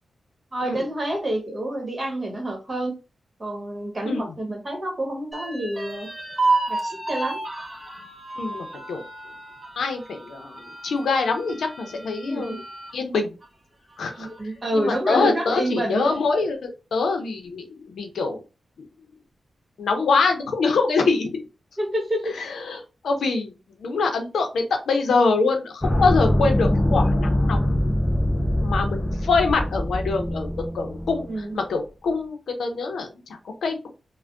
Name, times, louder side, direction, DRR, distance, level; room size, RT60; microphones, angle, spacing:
voice 1, 0.5-2.9 3.4-6.1 6.7-7.4 12.2-12.6 14.2-16.0 21.8-22.3 26.4-26.7 31.3-31.6, right 1 dB, 35° right, 1 dB, 1.3 m, -28 dB
sound 1, 5.3-13.0 13.4-13.5 13.9-14.6, right 3 dB, 15° right, 0.8 m, -31 dB
voice 2, 8.4-9.0 9.8-12.6 12.9-13.3 14.0-14.3 14.7-18.4 19.8-21.4 22.3-23.5 23.8-27.8 28.6-33.1 33.6-33.9, left 4 dB, 85° left, 5 dB, 0.6 m, -24 dB
sound 2, 25.8-31.3, left 1 dB, 15° left, 0.4 m, -23 dB
3.3 x 2.1 x 2.4 m, 0.30 s
wide cardioid pair, 90°, 0 cm